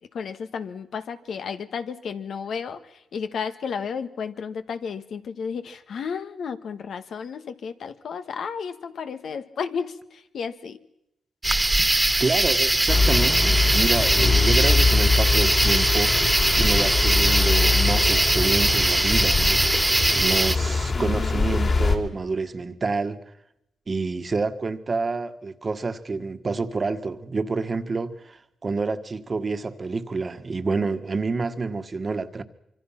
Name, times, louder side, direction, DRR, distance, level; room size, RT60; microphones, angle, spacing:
voice 1, 0.1-10.8 20.9-21.5, left 6 dB, 70° left, 1.4 m, -33 dB
sound 1, 11.4-20.6, right 1 dB, 15° right, 1.7 m, -21 dB
voice 2, 12.2-19.7 20.1-23.2 23.9-32.4, right 4 dB, 40° right, 1.6 m, -28 dB
sound 2, 12.9-22.0, left 4 dB, 45° left, 3.6 m, -23 dB
25.5 x 24.0 x 5.9 m
cardioid pair, 70°, 0 cm